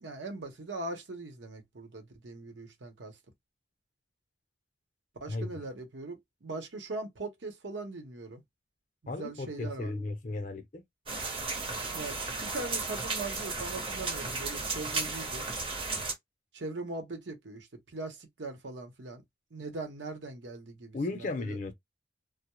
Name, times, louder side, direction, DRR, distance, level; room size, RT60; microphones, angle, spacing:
voice 1, 0.0-3.2 5.2-8.4 9.0-10.0 11.9-15.5 16.5-19.2 19.5-21.6, right 2 dB, 80° right, 0.8 m, -40 dB
voice 2, 5.3-5.6 9.1-10.8 11.8-11.9 20.9-21.7, left 2 dB, 45° left, 0.5 m, -35 dB
sound 1, 11.1-16.1, right 3 dB, 30° right, 0.6 m, -34 dB
2.2 x 2.0 x 2.9 m
head